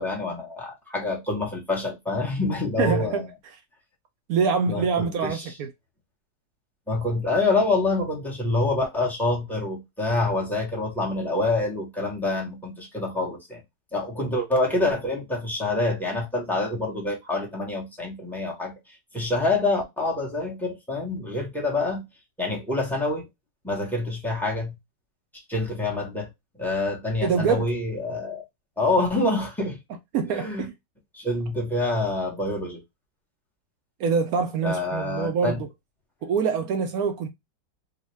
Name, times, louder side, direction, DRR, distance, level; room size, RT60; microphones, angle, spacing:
voice 1, 0.0-3.3 4.7-5.5 6.9-13.6 13.9-22.1 22.4-23.3 23.6-24.7 25.3-26.3 26.6-28.4 28.8-29.8 30.3-30.7 31.1-32.8 34.6-35.6, left 2 dB, ahead, 0.5 m, -26 dB
voice 2, 2.8-3.6 4.3-5.7 27.2-27.7 30.1-30.7 34.0-35.7 36.2-37.3, right 6 dB, 70° right, 0.8 m, -25 dB
3.8 x 2.2 x 3.1 m
omnidirectional pair, 1.9 m